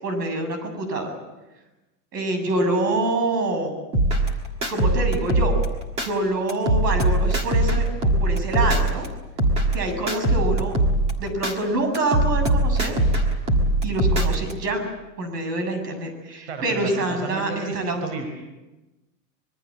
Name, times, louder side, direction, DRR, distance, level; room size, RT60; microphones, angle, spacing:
voice 1, 0.0-1.1 2.1-3.7 4.7-5.5 6.0-7.8 8.2-9.0 9.7-10.7 11.2-12.9 13.8-14.9 15.2-18.1, right 2 dB, 75° right, 7 dB, 7.7 m, -26 dB
sound 1, 3.9-6.1 6.5-9.1 9.4-11.5 11.9-14.5, right 1 dB, 10° right, 1.7 m, -21 dB
voice 2, 16.5-18.3, right 3 dB, 45° right, 4 dB, 4.7 m, -33 dB
25.5 x 22.0 x 7.6 m, 1.0 s
supercardioid pair, 180°, 49 cm